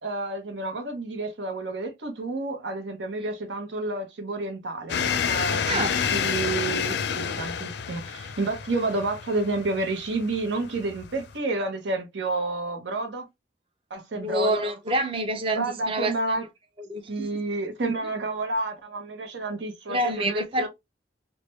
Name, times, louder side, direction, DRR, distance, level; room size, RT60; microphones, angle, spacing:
voice 1, 0.0-5.0 5.3-13.3 13.9-14.6 15.5-16.5 17.1-20.7, right 2 dB, 80° right, 0.8 m, -30 dB
sound 1, 4.9-11.4, left 7 dB, 65° left, 0.4 m, -29 dB
voice 2, 5.6-6.0 14.1-16.1 16.8-17.3 19.9-20.7, right 1 dB, 30° right, 0.6 m, -27 dB
3.2 x 2.1 x 3.0 m
head